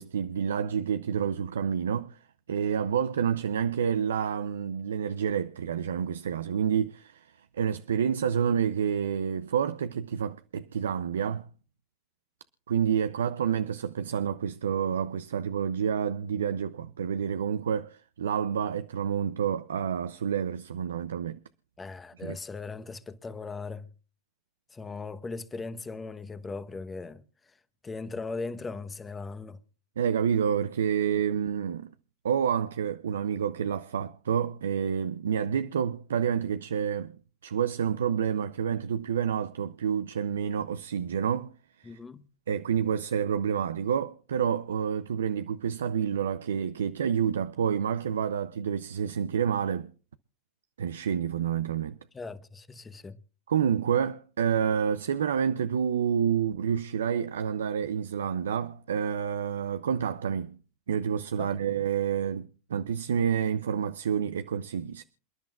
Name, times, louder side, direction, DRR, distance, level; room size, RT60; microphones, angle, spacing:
voice 1, 0.0-2.2 2.5-11.5 12.7-21.4 22.2-22.4 30.0-31.9 32.2-37.1 37.4-41.5 41.8-42.0 42.5-49.9 50.8-52.0 53.5-60.6 60.9-65.0, right 8 dB, 85° right, 0.5 m, -28 dB
voice 2, 21.8-23.9 24.7-27.2 27.8-29.6 31.1-31.2 41.8-42.2 52.1-53.2 61.4-61.5, left 4 dB, 15° left, 1.0 m, -38 dB
28.0 x 10.5 x 2.4 m
hypercardioid pair, 105°, 0 cm